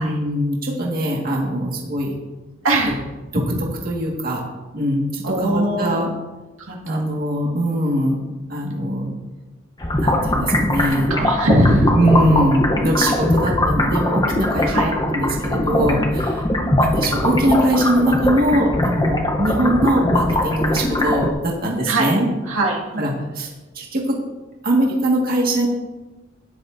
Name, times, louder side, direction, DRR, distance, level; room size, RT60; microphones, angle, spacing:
voice 1, 0.0-2.1 3.3-4.4 4.7-6.1 6.8-9.1 10.0-11.1 11.9-16.4 16.8-22.3 23.0-23.5 23.8-24.2 24.6-25.7, right 1 dB, 50° right, -2 dB, 1.8 m, -21 dB
voice 2, 2.6-3.0 5.2-6.1 6.6-7.0 10.6-11.9 14.6-14.9 16.6-17.1 21.9-22.1 22.5-23.1, right 1 dB, 85° right, -1 dB, 1.9 m, -22 dB
sound 1, 9.8-21.3, left 1 dB, 20° left, 0.8 m, -20 dB
12.5 x 9.9 x 2.6 m, 1.1 s
head